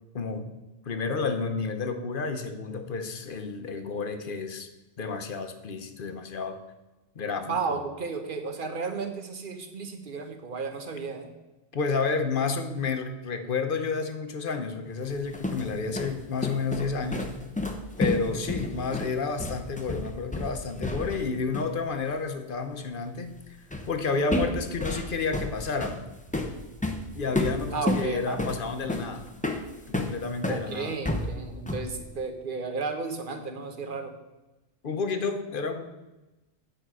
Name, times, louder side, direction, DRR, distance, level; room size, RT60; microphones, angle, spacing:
voice 1, 0.1-0.5 0.8-4.7 5.0-6.6 7.1-7.8 11.7-17.4 18.0-23.3 23.9-26.1 27.1-29.3 29.9-31.0 34.8-35.8, left 4 dB, 50° left, 7 dB, 0.9 m, -30 dB
voice 2, 7.5-11.3 18.0-18.2 27.7-28.5 30.5-34.1, right 4 dB, 45° right, 5 dB, 1.1 m, -33 dB
sound 1, 15.1-21.3 21.5-21.8 23.7-24.0 24.3-30.6 31.0-32.0, left 1 dB, 10° left, 0.6 m, -31 dB
9.0 x 5.0 x 6.1 m, 1.0 s
omnidirectional pair, 1.2 m